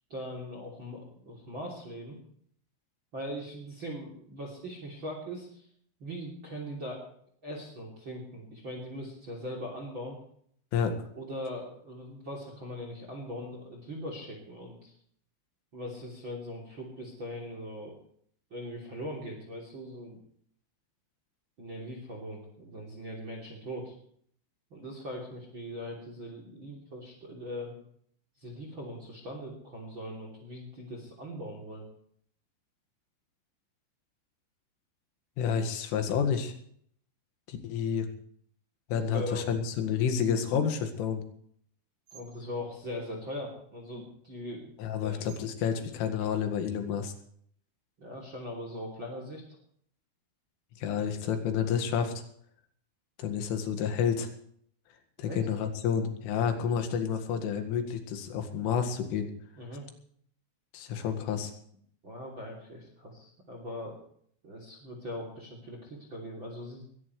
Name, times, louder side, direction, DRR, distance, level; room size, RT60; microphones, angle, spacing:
voice 1, 0.1-2.2 3.1-5.7 6.0-7.1 7.4-10.2 11.1-14.9 15.7-17.9 18.5-20.2 21.6-23.9 24.7-27.8 28.4-31.8 38.9-39.5 42.1-44.7 45.0-45.2 48.0-49.4 55.2-55.5 59.5-59.8 62.0-64.0 64.4-66.9, equal, 30° right, 1 dB, 3.2 m, -40 dB
voice 2, 35.4-36.5 37.5-38.1 38.9-41.2 44.8-47.1 50.8-52.1 53.2-54.3 55.2-59.3 60.7-61.5, left 7 dB, 80° left, 7 dB, 4.4 m, -29 dB
sound 1, 40.5-41.0 42.1-42.3 44.0-44.4 45.3-45.4 46.2-46.3, right 1 dB, 60° right, 5.9 m, -48 dB
21.5 x 17.5 x 3.3 m, 0.64 s
omnidirectional pair, 5.7 m